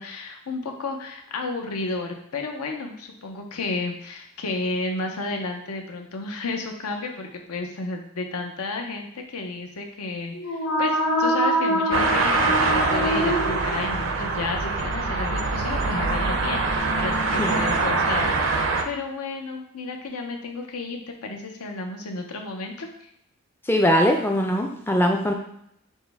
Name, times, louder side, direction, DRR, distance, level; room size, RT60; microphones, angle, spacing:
voice 1, 0.0-22.9, left 3 dB, 85° left, 3 dB, 0.7 m, -32 dB
sound 1, 10.3-14.2, equal, 60° left, 1.4 m, -24 dB
sound 2, 11.9-18.8, right 3 dB, 55° right, 0.4 m, -24 dB
voice 2, 23.7-25.3, equal, 10° left, 2 dB, 0.3 m, -21 dB
6.2 x 2.1 x 3.4 m, 0.76 s
head